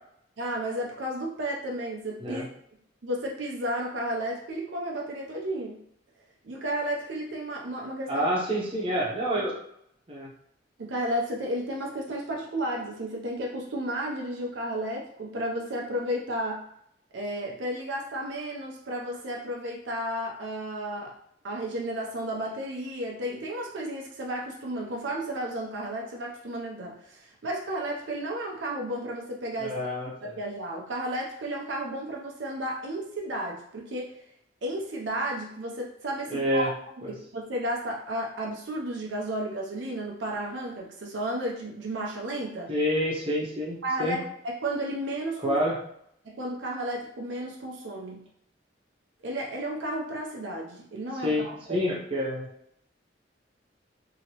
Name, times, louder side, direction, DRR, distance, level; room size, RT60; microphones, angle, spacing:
voice 1, 0.4-2.4 3.0-5.8 6.4-8.3 10.8-16.6 17.1-21.2 21.4-29.8 30.2-34.2 34.6-36.7 37.1-42.7 43.8-45.6 46.2-48.2 49.2-51.8, right 1 dB, 75° right, -1 dB, 0.6 m, -33 dB
voice 2, 8.1-9.5 10.1-10.3 29.6-30.3 36.3-36.7 37.0-37.1 42.7-44.2 45.4-45.8 51.2-52.5, equal, 30° right, -4 dB, 0.8 m, -28 dB
2.9 x 2.8 x 2.9 m, 0.72 s
head